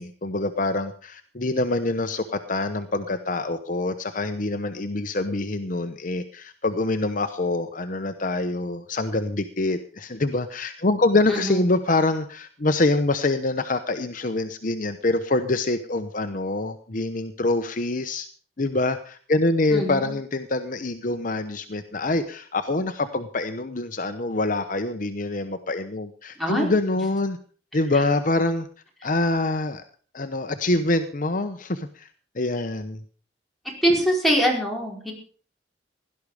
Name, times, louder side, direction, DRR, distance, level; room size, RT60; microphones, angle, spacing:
voice 1, 0.0-18.3 18.6-27.4 27.7-28.7 29.0-29.8 30.1-32.1 32.3-33.0, left 2 dB, 45° left, 9 dB, 0.9 m, -25 dB
voice 2, 11.3-11.7 19.7-20.1 26.4-26.7 33.8-35.1, equal, ahead, -2 dB, 4.7 m, -23 dB
17.0 x 12.0 x 4.9 m, 0.43 s
head